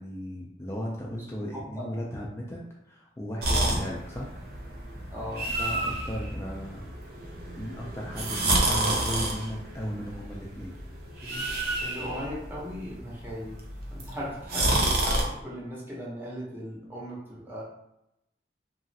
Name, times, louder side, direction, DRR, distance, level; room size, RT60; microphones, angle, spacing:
voice 1, 0.0-4.3 5.4-6.9 7.6-10.7, equal, 15° left, -4 dB, 0.3 m, -36 dB
voice 2, 1.5-1.9 3.5-3.8 5.1-5.6 11.2-13.6 13.9-17.6, equal, 10° right, -6 dB, 0.7 m, -38 dB
sound 1, 3.4-15.2, right 1 dB, 55° right, 0.6 m, -30 dB
2.9 x 2.4 x 2.7 m, 0.84 s
head